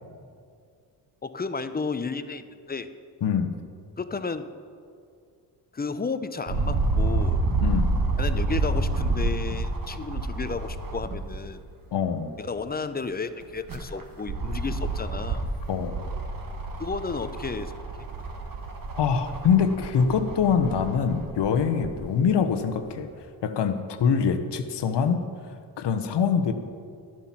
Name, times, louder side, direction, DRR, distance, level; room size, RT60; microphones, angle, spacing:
voice 1, 1.2-2.9 4.0-4.5 5.7-7.4 8.2-11.6 12.4-15.5 16.8-17.7, left 4 dB, 20° left, 11 dB, 0.6 m, -32 dB
voice 2, 3.2-3.6 7.6-7.9 11.9-12.3 15.7-16.0 19.0-23.1 23.4-25.2 25.8-26.5, left 6 dB, 60° left, 8 dB, 1.1 m, -24 dB
sound 1, 6.5-11.5 12.0-12.1 13.4-22.0 22.7-22.8, right 2 dB, 45° right, 1.5 m, -29 dB
11.5 x 7.4 x 5.8 m, 2.3 s
supercardioid pair, 55°, 47 cm